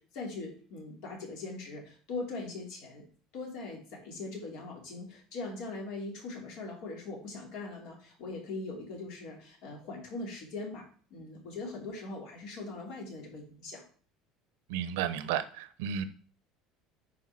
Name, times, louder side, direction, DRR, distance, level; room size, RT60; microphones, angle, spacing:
voice 1, 0.0-3.0 3.3-13.8, left 3 dB, 60° left, 0 dB, 3.2 m, -41 dB
voice 2, 14.7-16.0, right 9 dB, 90° right, 13 dB, 0.8 m, -33 dB
10.5 x 4.5 x 4.3 m, 0.43 s
cardioid pair, 165°, 0 cm